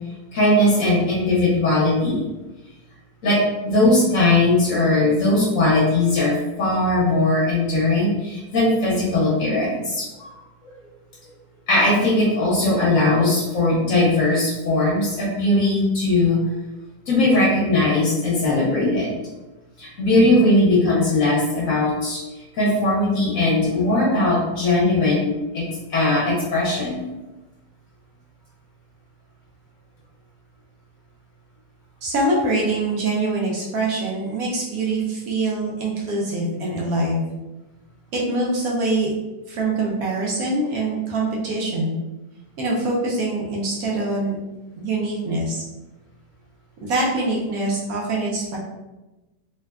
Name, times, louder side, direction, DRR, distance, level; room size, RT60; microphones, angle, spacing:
voice 1, 0.3-2.2 3.2-10.3 11.7-16.4 17.1-19.1 19.8-22.2 22.5-25.6 25.9-27.0, left 2 dB, 60° left, -6 dB, 1.1 m, -19 dB
voice 2, 32.0-37.2 38.1-39.1 39.5-42.0 42.6-44.4 44.8-45.6 46.8-48.6, right 2 dB, 70° right, -3 dB, 0.9 m, -24 dB
3.3 x 2.1 x 2.2 m, 1.1 s
omnidirectional pair, 1.9 m